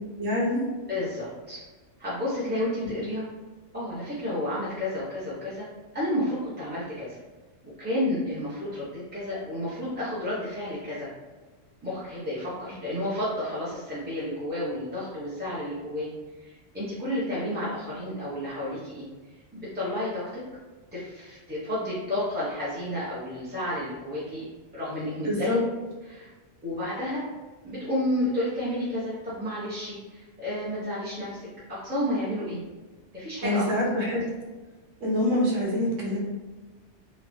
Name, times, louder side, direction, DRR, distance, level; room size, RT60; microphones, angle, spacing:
voice 1, 0.2-0.7 25.2-25.6 33.4-34.2 35.0-36.2, left 1 dB, 90° right, -3 dB, 1.2 m, -25 dB
voice 2, 0.9-1.6 2.0-3.2 3.7-5.7 5.9-7.2 7.8-11.1 11.8-16.1 16.4-19.0 19.5-20.4 20.9-25.5 26.1-26.3 26.6-27.3 27.6-31.4 31.7-32.6 33.1-33.7, left 1 dB, 10° right, -11 dB, 0.5 m, -31 dB
3.0 x 2.1 x 2.6 m, 1.3 s
omnidirectional pair, 1.3 m